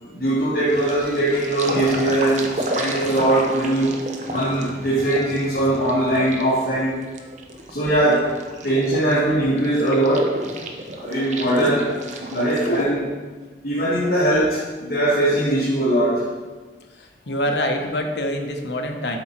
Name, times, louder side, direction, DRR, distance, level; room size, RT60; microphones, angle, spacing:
voice 1, 0.0-4.0 4.3-7.0 7.7-8.4 8.6-10.6 10.9-11.9 12.3-13.1 13.6-16.3, right 1 dB, 55° left, -8 dB, 1.7 m, -21 dB
sound 1, 0.7-12.8, right 1 dB, 40° right, 0.8 m, -32 dB
voice 2, 12.6-13.0 17.0-19.2, equal, 80° left, 4 dB, 1.0 m, -25 dB
7.9 x 5.2 x 4.4 m, 1.3 s
head